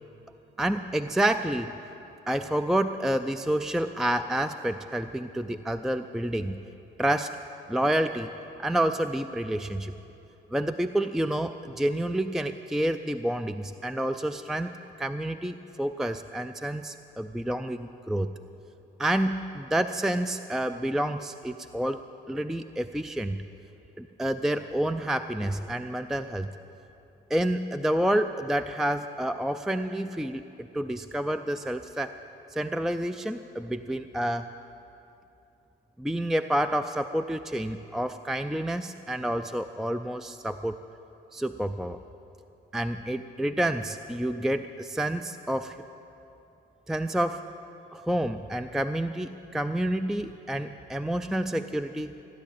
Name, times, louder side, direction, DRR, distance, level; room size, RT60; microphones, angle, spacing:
voice 1, 0.6-1.7 2.3-6.6 7.0-7.4 7.7-8.3 8.6-9.9 10.5-14.7 15.0-18.3 19.0-22.0 22.3-23.4 24.0-26.5 27.3-30.4 30.7-32.1 32.5-34.5 36.0-40.8 41.3-42.0 42.7-45.8 46.9-47.4 47.9-52.1, right 1 dB, ahead, 9 dB, 0.4 m, -29 dB
15.5 x 10.5 x 8.6 m, 2.9 s
cardioid pair, 90°, 20 cm